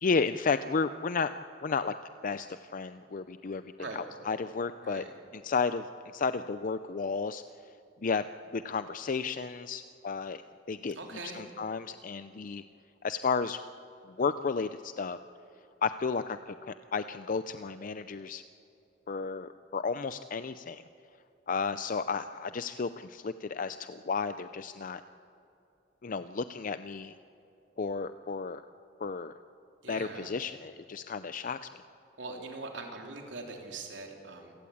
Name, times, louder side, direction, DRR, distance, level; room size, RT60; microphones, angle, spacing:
voice 1, 0.0-1.3 1.6-1.9 2.2-5.0 5.3-5.9 6.1-7.4 8.0-8.2 8.5-10.4 10.7-11.0 11.3-12.6 13.0-13.6 14.1-15.2 15.8-18.4 19.1-20.8 21.5-25.0 26.0-27.1 27.8-28.6 29.0-29.3 29.9-31.7, left 5 dB, 45° left, 12 dB, 0.5 m, -32 dB
voice 2, 10.9-11.5 29.8-30.4 32.2-34.5, right 3 dB, 75° right, 2 dB, 3.5 m, -42 dB
27.0 x 17.0 x 8.6 m, 2.8 s
head